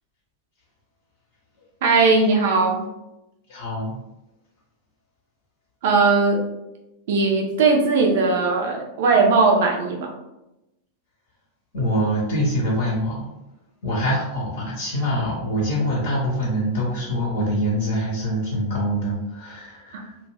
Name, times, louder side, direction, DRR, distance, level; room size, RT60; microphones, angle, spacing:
voice 1, 1.8-2.8 5.8-6.4 7.1-10.1, right 4 dB, 55° right, 0 dB, 0.5 m, -18 dB
voice 2, 3.5-4.0 11.7-13.3 13.8-20.1, equal, 55° left, -4 dB, 0.7 m, -24 dB
2.3 x 2.2 x 3.1 m, 0.94 s
figure-of-eight pair, 90°, 0 cm